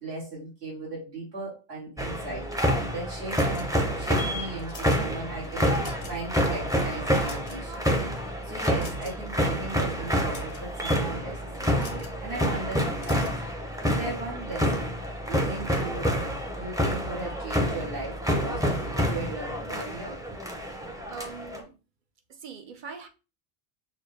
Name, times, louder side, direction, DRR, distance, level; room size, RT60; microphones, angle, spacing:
voice 1, 0.0-2.5 2.9-7.9 8.4-13.4 13.8-15.0 15.3-20.2, right 2 dB, 75° right, 1.9 m, -38 dB
sound 1, 2.0-21.6, equal, 5° right, 0.6 m, -28 dB
sound 2, 3.3-4.0 4.5-5.0 5.6-6.3 6.6-6.7 7.1-7.8 8.8-9.3 10.1-10.7 11.8-12.2 13.0-13.4, left 3 dB, 80° left, 1.3 m, -45 dB
voice 2, 21.1-21.7 22.3-23.1, right 5 dB, 55° right, 0.8 m, -41 dB
6.3 x 2.2 x 3.2 m
omnidirectional pair, 1.1 m